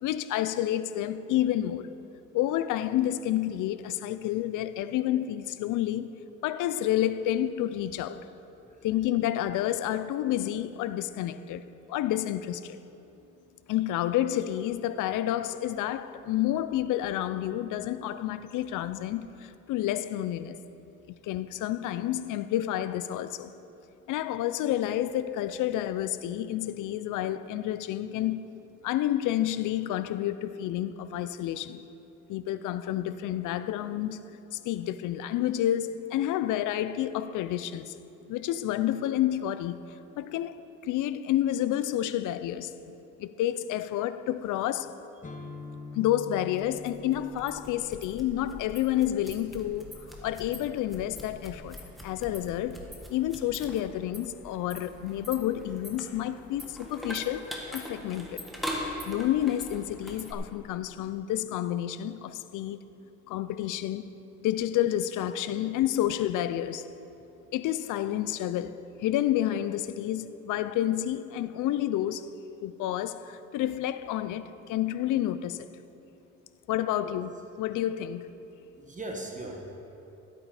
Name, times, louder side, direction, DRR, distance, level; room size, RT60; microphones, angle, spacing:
voice 1, 0.0-1.9 2.3-6.1 6.4-8.3 8.8-12.8 13.7-20.6 21.2-23.5 24.1-28.5 28.8-31.8 32.3-34.2 34.5-38.0 38.3-39.8 40.2-45.0 45.9-49.9 50.2-51.8 52.0-58.4 59.1-62.8 63.3-64.1 64.4-66.9 67.5-72.3 72.6-75.7 76.7-77.3 77.6-78.3, left 12 dB, 85° left, 0.5 m, -29 dB
sound 1, 45.2-53.0, left 4 dB, 25° left, 1.0 m, -48 dB
sound 2, 46.6-60.3, equal, ahead, 1.7 m, -42 dB
voice 2, 78.7-79.6, right 2 dB, 25° right, 1.4 m, -39 dB
13.5 x 8.4 x 4.9 m
cardioid pair, 90°, 30 cm